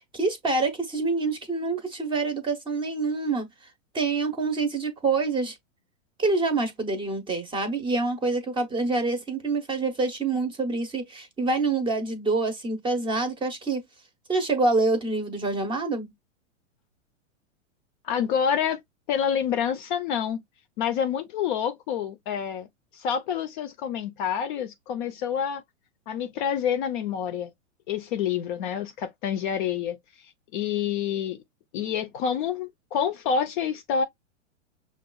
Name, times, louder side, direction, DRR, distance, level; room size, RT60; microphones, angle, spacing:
voice 1, 0.1-3.5 3.9-5.5 6.2-13.8 14.3-16.1, right 3 dB, 15° right, 0.7 m, -26 dB
voice 2, 18.0-18.8 19.1-20.4 20.8-22.7 22.9-25.6 26.1-27.5 27.9-30.0 30.5-31.4 31.7-34.0, left 8 dB, 40° left, 0.5 m, -27 dB
5.9 x 2.3 x 2.3 m
hypercardioid pair, 130°, 39 cm